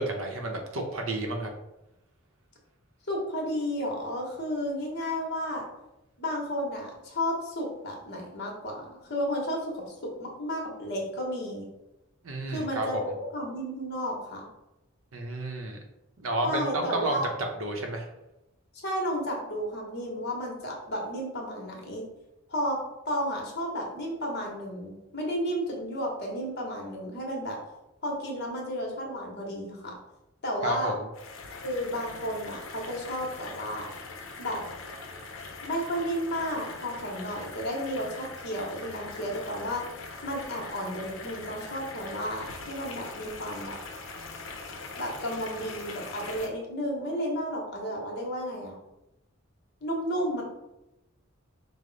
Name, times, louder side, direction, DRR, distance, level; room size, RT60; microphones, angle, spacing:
voice 1, 0.0-1.5 12.2-13.0 15.1-15.8 16.2-18.1 30.6-31.1, right 2 dB, 80° right, 3 dB, 0.8 m, -31 dB
voice 2, 3.1-5.6 6.2-11.7 12.5-14.5 16.4-17.3 18.7-22.0 22.5-22.8 23.0-27.6 28.0-29.9 30.4-30.9 31.6-33.9 34.4-34.6 35.6-39.9 40.2-43.7 45.0-48.8 49.8-50.4, equal, 55° left, 0 dB, 1.1 m, -32 dB
sound 1, 31.1-46.5, left 3 dB, 80° left, 0.7 m, -42 dB
5.0 x 2.1 x 3.9 m, 0.93 s
head